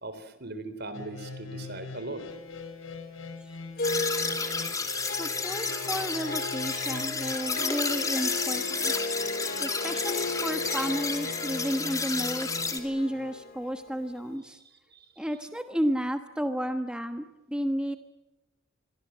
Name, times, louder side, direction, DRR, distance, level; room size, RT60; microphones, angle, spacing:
voice 1, 0.0-2.3 14.9-15.1, right 2 dB, 55° right, 12 dB, 3.7 m, -39 dB
sound 1, 0.9-13.4, left 4 dB, 75° left, 5.7 m, -43 dB
Harp, 3.8-14.4, left 2 dB, 50° left, 3.5 m, -36 dB
sound 2, 3.8-12.8, left 4 dB, 15° left, 2.8 m, -31 dB
voice 2, 4.9-8.9 9.6-14.6 15.2-18.0, equal, 5° right, 7 dB, 1.3 m, -32 dB
27.5 x 22.5 x 7.6 m, 1.1 s
head